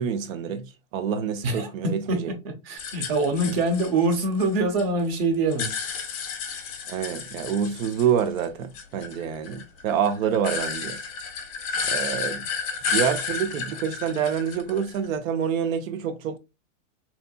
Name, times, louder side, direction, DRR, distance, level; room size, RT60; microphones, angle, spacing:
voice 1, 0.0-2.3 3.5-3.6 6.9-11.0 11.8-12.5 12.9-16.4, right 8 dB, 85° right, 0.6 m, -27 dB
voice 2, 1.4-6.0, right 2 dB, 50° right, 0.9 m, -25 dB
sound 1, 2.8-4.8 5.1-8.5 8.7-15.1, left 5 dB, 30° left, 0.3 m, -32 dB
2.8 x 2.3 x 2.2 m
supercardioid pair, 155°, 39 cm